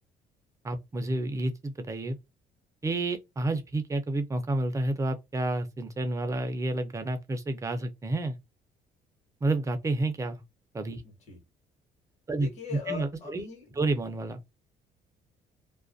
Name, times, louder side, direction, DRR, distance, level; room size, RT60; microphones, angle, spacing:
voice 1, 0.6-2.2 2.8-8.4 9.4-10.4 10.7-11.0 12.3-12.5 12.9-13.4 13.8-14.4, right 2 dB, 20° right, 0.5 m, -30 dB
voice 2, 11.0-11.4 12.3-13.8, left 6 dB, 40° left, 1.2 m, -40 dB
2.4 x 2.1 x 2.5 m
cardioid pair, 110°, 17 cm